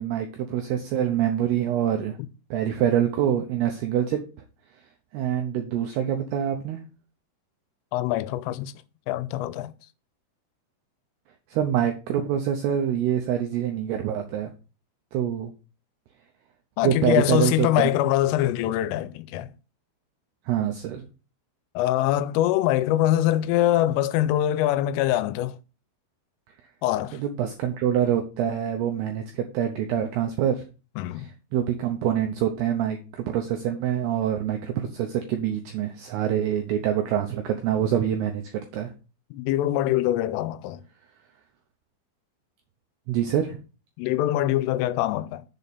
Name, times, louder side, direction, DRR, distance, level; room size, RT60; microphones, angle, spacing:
voice 1, 0.0-2.2 2.5-4.2 5.1-6.8 11.5-14.5 15.1-15.5 16.8-17.9 20.5-21.1 27.1-30.6 31.2-38.9 43.1-43.6, right 10 dB, 85° right, 2.3 m, -25 dB
voice 2, 7.9-8.7 9.1-9.7 16.8-19.5 21.8-25.6 26.8-27.2 31.0-31.3 39.3-40.8 44.0-45.4, left 13 dB, 90° left, 3.2 m, -23 dB
7.1 x 4.2 x 6.7 m
omnidirectional pair, 5.7 m